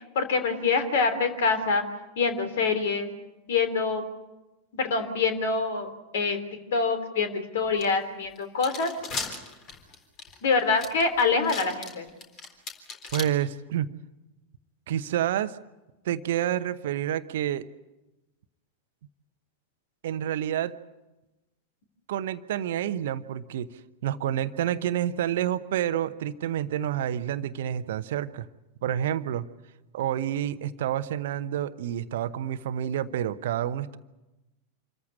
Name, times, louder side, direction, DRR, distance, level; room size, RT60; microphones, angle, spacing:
voice 1, 0.1-1.8 2.1-3.1 3.5-4.0 4.7-5.9 6.1-6.4 6.7-8.9 10.4-12.1, left 4 dB, 55° left, 9 dB, 3.3 m, -25 dB
sound 1, 7.8-7.9 8.4-13.2, left 4 dB, 35° left, 3.9 m, -36 dB
voice 2, 13.1-13.9 14.9-15.6 16.0-17.6 20.0-20.7 22.1-23.7 24.0-28.5 28.8-29.5 29.9-34.0, right 11 dB, 55° right, 13 dB, 0.9 m, -28 dB
27.0 x 14.5 x 9.9 m, 1.0 s
figure-of-eight pair, 90°, 0 cm